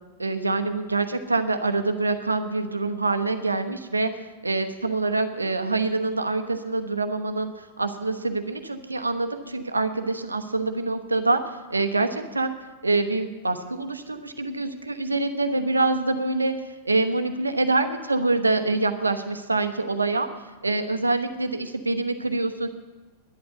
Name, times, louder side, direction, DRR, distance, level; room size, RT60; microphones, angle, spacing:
voice 1, 0.2-12.5 12.8-20.3 20.6-22.7, right 3 dB, 80° right, 8 dB, 1.0 m, -25 dB
11.0 x 11.0 x 7.9 m, 1.2 s
figure-of-eight pair, 90°, 0 cm